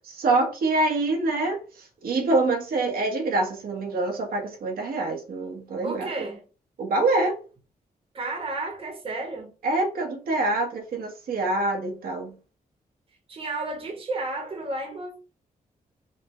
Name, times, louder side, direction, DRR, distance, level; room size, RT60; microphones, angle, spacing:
voice 1, 0.0-6.1 6.8-7.4 9.6-12.3, right 2 dB, 85° right, 1.2 m, -25 dB
voice 2, 5.8-6.4 8.1-9.5 13.3-15.2, right 2 dB, 40° right, 1.0 m, -32 dB
5.0 x 2.2 x 3.0 m
wide cardioid pair, 135°, 15 cm